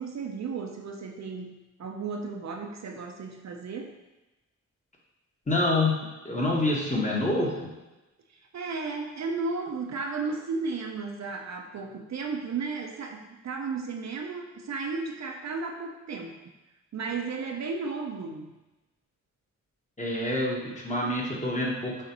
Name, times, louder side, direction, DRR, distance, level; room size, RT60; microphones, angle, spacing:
voice 1, 0.0-3.9 8.5-16.4 16.9-18.5, right 4 dB, 60° right, 3 dB, 0.5 m, -34 dB
voice 2, 5.5-6.0 6.2-7.7 20.0-22.0, left 2 dB, 25° left, -4 dB, 1.1 m, -27 dB
6.5 x 2.4 x 2.9 m, 1.1 s
wide cardioid pair, 105°, 31 cm